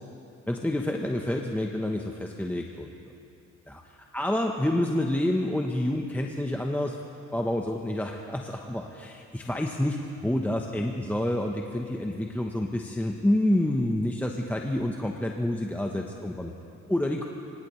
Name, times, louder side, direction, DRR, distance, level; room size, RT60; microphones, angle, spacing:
voice 1, 0.5-2.9 3.7-3.8 4.1-7.0 7.3-16.5 16.9-17.2, left 1 dB, 5° left, 1 dB, 0.9 m, -28 dB
25.0 x 17.0 x 3.2 m, 2.5 s
cardioid pair, 90°, 30 cm